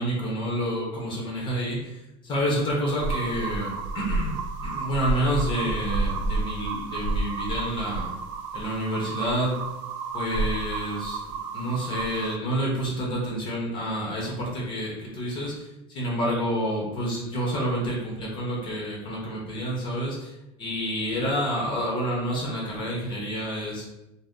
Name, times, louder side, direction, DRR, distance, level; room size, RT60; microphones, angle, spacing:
voice 1, 0.0-8.1 8.5-9.6 10.1-23.8, equal, 30° left, -3 dB, 0.7 m, -29 dB
sound 1, 3.0-12.4, right 3 dB, 70° right, 0.4 m, -30 dB
2.6 x 2.0 x 3.5 m, 0.91 s
supercardioid pair, 155°, 17 cm